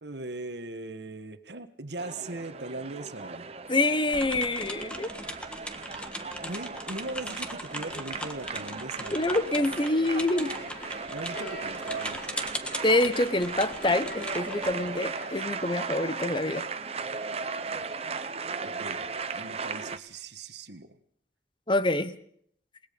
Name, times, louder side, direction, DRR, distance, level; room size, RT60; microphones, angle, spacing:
voice 1, 0.0-3.5 6.4-9.2 11.1-12.3 18.6-19.0 19.3-21.0, right 2 dB, 70° right, 9 dB, 1.6 m, -39 dB
sound 1, 2.0-20.0, right 4 dB, 35° right, 0.9 m, -37 dB
voice 2, 3.7-5.1 9.1-10.5 12.8-16.6 21.7-22.1, left 2 dB, 25° left, 12 dB, 1.1 m, -26 dB
sound 2, 4.1-15.7, left 1 dB, 5° left, 1.5 m, -40 dB
sound 3, 9.8-15.5, left 2 dB, 60° left, 4.2 m, -45 dB
28.0 x 20.0 x 5.4 m, 0.66 s
head